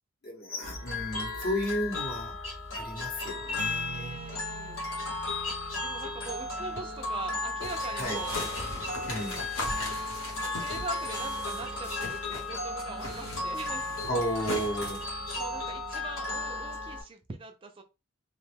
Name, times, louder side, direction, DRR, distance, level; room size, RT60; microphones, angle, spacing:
voice 1, 0.2-2.3 2.7-4.2 8.0-8.2 9.1-9.5 14.1-15.1, equal, 45° left, 0.9 m, -33 dB
sound 1, 0.6-17.0, left 2 dB, 70° left, 1.1 m, -35 dB
voice 2, 3.9-9.1 10.6-13.9 14.5-15.0 15.3-17.8, right 3 dB, 25° right, 0.3 m, -43 dB
sound 2, 7.6-12.5 12.8-15.1, left 1 dB, 90° left, 1.1 m, -39 dB
2.9 x 2.1 x 3.3 m
head